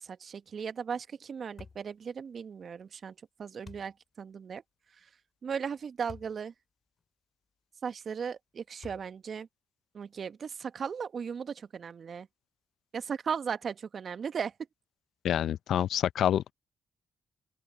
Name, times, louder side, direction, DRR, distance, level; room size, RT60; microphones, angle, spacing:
voice 1, 0.0-4.6 5.4-6.5 7.8-9.5 9.9-12.3 12.9-14.5, right 6 dB, 55° right, 1.2 m, -37 dB
sound 1, 1.6-1.9 3.6-3.9 6.1-6.4 7.0-7.1 8.8-9.3, left 5 dB, 45° left, 5.1 m, -49 dB
voice 2, 15.2-16.5, left 10 dB, 70° left, 0.5 m, -27 dB
open air
hypercardioid pair, 45°, 0 cm